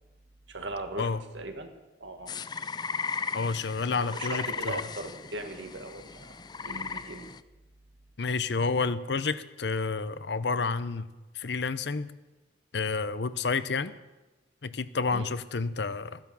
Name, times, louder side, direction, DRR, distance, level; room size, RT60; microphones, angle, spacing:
voice 1, 0.5-1.7 2.0-2.3 4.1-7.3 15.1-15.3, right 2 dB, 85° right, 5 dB, 1.9 m, -39 dB
sound 1, 2.3-7.4, left 5 dB, 25° left, 0.4 m, -36 dB
voice 2, 3.3-4.8 8.2-11.1 11.4-12.1 12.7-13.9 14.6-16.2, left 4 dB, 70° left, 14 dB, 0.7 m, -30 dB
15.0 x 10.5 x 7.1 m, 1.1 s
head